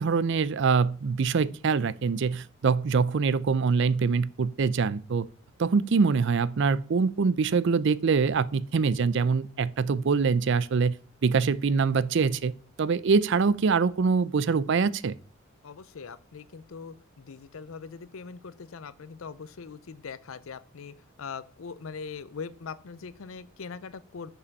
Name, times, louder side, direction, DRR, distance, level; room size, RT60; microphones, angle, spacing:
voice 1, 0.0-5.3 5.6-10.9 11.2-12.5 12.8-15.1, right 5 dB, 60° right, 0.4 m, -24 dB
voice 2, 15.6-24.3, left 5 dB, 85° left, 0.6 m, -41 dB
7.0 x 5.5 x 5.3 m
head